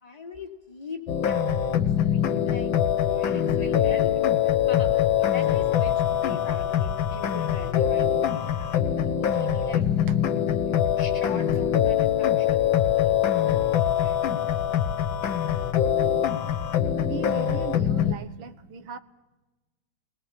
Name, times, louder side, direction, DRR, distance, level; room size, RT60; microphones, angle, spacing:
voice 1, 0.0-4.1 4.6-9.9 11.0-14.2, left 4 dB, 20° left, 0 dB, 3.0 m, -42 dB
sound 1, 1.1-18.1, left 10 dB, 80° left, 1.8 m, -23 dB
voice 2, 17.0-19.0, right 7 dB, 85° right, 10 dB, 2.0 m, -38 dB
21.5 x 21.0 x 7.4 m, 1.1 s
omnidirectional pair, 2.1 m